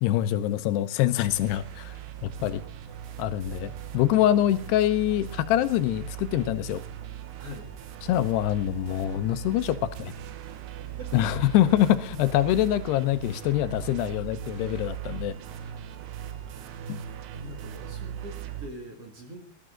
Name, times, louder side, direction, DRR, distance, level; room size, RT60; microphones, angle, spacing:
voice 1, 0.0-2.0 2.2-2.6 3.2-6.8 8.0-10.1 11.1-15.4 16.9-17.0, left 13 dB, 85° left, 12 dB, 2.9 m, -25 dB
sound 1, 1.2-18.7, right 10 dB, 85° right, 3.2 m, -39 dB
voice 2, 7.4-7.7 10.5-11.3 14.1-14.3 16.6-17.0 17.3-19.4, left 1 dB, 45° right, 3 dB, 2.5 m, -45 dB
19.5 x 12.5 x 3.8 m, 0.39 s
omnidirectional pair, 4.7 m